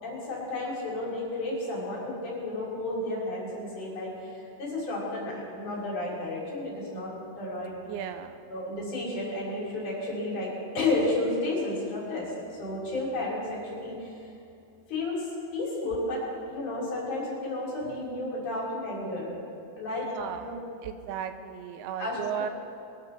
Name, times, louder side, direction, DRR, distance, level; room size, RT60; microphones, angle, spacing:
voice 1, 0.0-7.1 7.4-7.7 8.5-12.3 12.6-14.1 14.9-15.2 15.5-16.2 16.5-19.3 19.8-20.1 20.4-20.6 22.0-22.2, left 2 dB, 50° left, -5 dB, 4.7 m, -32 dB
voice 2, 7.9-8.4 19.9-20.6 20.8-22.5, right 9 dB, 85° right, 8 dB, 2.5 m, -36 dB
22.0 x 13.0 x 4.0 m, 2.6 s
omnidirectional pair, 4.6 m